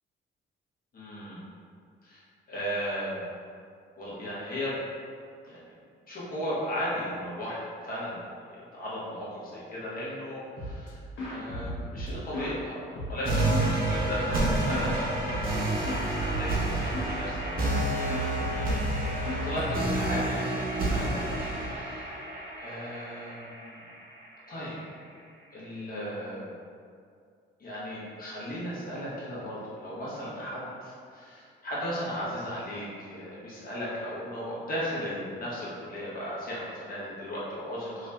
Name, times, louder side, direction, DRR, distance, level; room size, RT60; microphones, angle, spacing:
voice 1, 0.9-1.4 2.0-3.3 4.0-4.8 5.4-5.7 6.1-11.0 11.3-15.0 15.2-15.8 16.2-22.1 22.6-23.9 24.5-24.8 25.5-26.5 27.6-38.1, equal, 45° left, -8 dB, 1.3 m, -36 dB
sound 1, 10.6-10.9 11.2-12.6 12.9-14.9 15.3-15.6 15.8-17.2 17.5-17.8 18.1-20.2, equal, 75° left, 1.1 m, -36 dB
sound 2, 13.3-24.2, right 2 dB, 45° right, 1.0 m, -29 dB
3.1 x 2.7 x 3.5 m, 2.3 s
cardioid pair, 90°, 20 cm